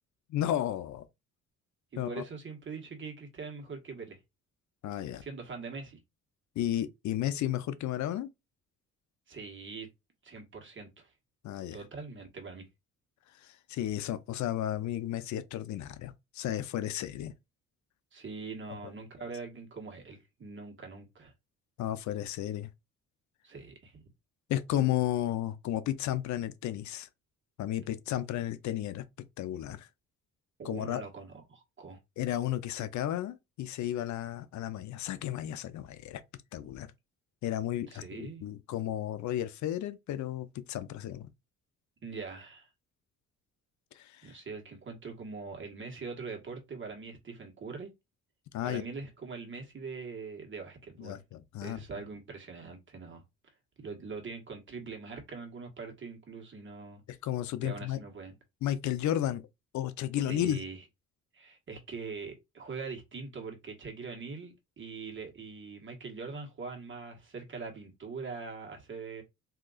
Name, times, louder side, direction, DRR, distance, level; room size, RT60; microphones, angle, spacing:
voice 1, 0.3-1.0 2.0-2.2 4.8-5.2 6.6-8.3 11.4-11.8 13.4-17.3 21.8-22.7 24.5-27.1 27.6-29.0 29.4-29.9 30.6-31.0 32.2-36.2 36.5-36.9 37.4-41.3 43.9-44.3 48.5-48.8 51.0-51.8 57.2-58.0 58.6-59.4 59.7-60.6, left 12 dB, 70° left, 0.6 m, -33 dB
voice 2, 1.9-4.2 5.2-6.0 9.3-9.9 10.2-11.1 11.7-12.7 18.1-21.3 23.4-24.0 30.6-32.0 37.9-38.4 42.0-42.7 44.2-47.9 48.6-51.2 51.6-53.2 53.8-57.0 57.6-58.3 60.3-60.8 61.3-69.2, right 4 dB, 40° right, 1.4 m, -42 dB
3.7 x 2.8 x 2.3 m
cardioid pair, 90°, 30 cm